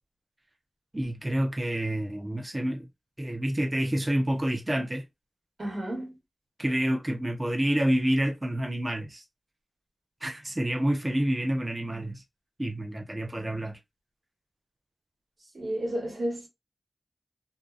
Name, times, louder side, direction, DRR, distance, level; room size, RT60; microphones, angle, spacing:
voice 1, 0.9-2.9 3.2-5.1 6.6-9.2 10.2-12.2 12.6-13.8, right 1 dB, 30° right, 0.6 m, -28 dB
voice 2, 5.6-6.2 15.5-16.5, right 1 dB, 65° right, 1.2 m, -32 dB
2.7 x 2.3 x 2.4 m
wide cardioid pair, 65°, 0 cm